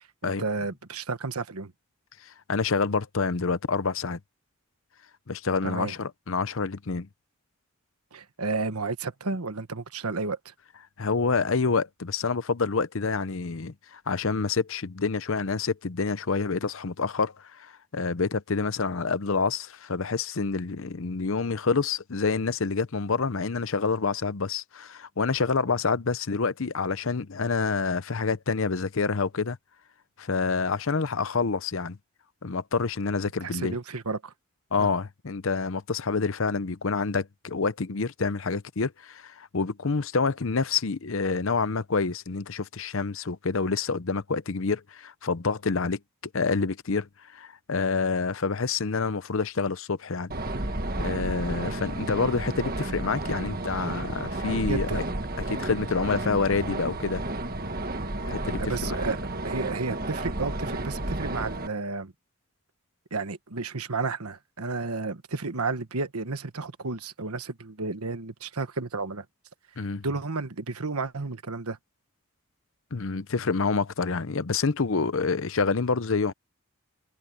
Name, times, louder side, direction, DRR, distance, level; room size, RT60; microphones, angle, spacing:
voice 1, 0.2-1.7 5.6-5.9 8.1-10.5 33.4-34.3 34.8-34.9 54.7-55.0 58.6-62.1 63.1-69.2 70.0-71.8, right 3 dB, 85° right, 1.4 m, -32 dB
voice 2, 2.2-4.2 5.3-7.1 11.0-29.6 30.2-32.0 32.4-33.8 34.7-46.0 46.3-50.3 51.0-55.0 55.5-57.2 58.2-58.8 69.8-70.0 72.9-76.3, left 4 dB, 65° left, 0.7 m, -27 dB
sound 1, 50.3-61.7, right 2 dB, 40° right, 1.6 m, -32 dB
head